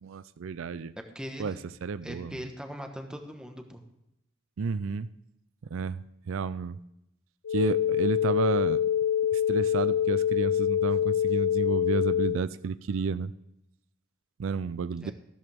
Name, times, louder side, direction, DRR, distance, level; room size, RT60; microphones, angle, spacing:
voice 1, 0.0-0.9 1.4-1.6 1.8-2.4 4.6-5.1 5.7-6.8 7.5-8.8 9.3-13.3 14.4-15.1, right 5 dB, 75° right, 15 dB, 0.4 m, -31 dB
voice 2, 1.1-1.6 2.0-3.8 15.0-15.1, equal, 5° right, 4 dB, 1.2 m, -40 dB
sound 1, 7.4-12.4, left 9 dB, 75° left, 0.4 m, -25 dB
14.0 x 13.0 x 3.5 m, 0.82 s
head